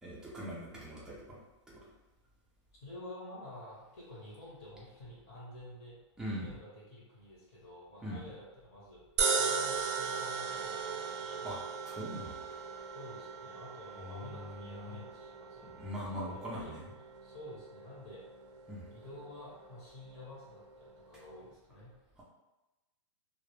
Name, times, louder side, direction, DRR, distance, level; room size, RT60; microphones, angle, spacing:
voice 1, 0.0-1.4 1.7-1.9 6.2-6.5 8.0-8.2 11.4-11.6 11.9-12.6 14.0-15.0 15.7-16.8 18.7-18.9 22.2-22.3, equal, 5° right, -6 dB, 0.4 m, -42 dB
voice 2, 2.8-6.0 6.4-9.0 9.4-11.5 12.9-15.7 16.3-17.0 17.2-18.2 18.9-22.0, left 1 dB, 40° left, -6 dB, 0.8 m, -50 dB
sound 1, 9.2-21.5, right 5 dB, 65° right, 0.4 m, -38 dB
2.0 x 2.0 x 3.1 m, 1.1 s
supercardioid pair, 155°, 16 cm